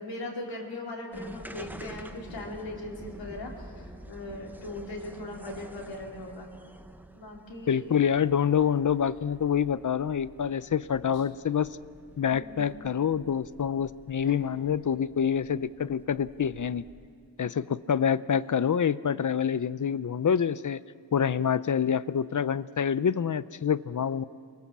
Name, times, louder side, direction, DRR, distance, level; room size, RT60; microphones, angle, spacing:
voice 1, 0.0-3.7 4.1-6.5 7.1-8.0 12.3-12.8 14.2-14.3, left 2 dB, 80° left, -2 dB, 4.1 m, -39 dB
sound 1, 1.1-17.3, right 1 dB, 5° right, 0.8 m, -48 dB
voice 2, 7.7-11.8 12.2-16.8 17.4-20.8 21.1-24.2, left 8 dB, 45° left, 16 dB, 0.6 m, -26 dB
30.0 x 23.5 x 7.4 m, 2.3 s
wide cardioid pair, 165°, 44 cm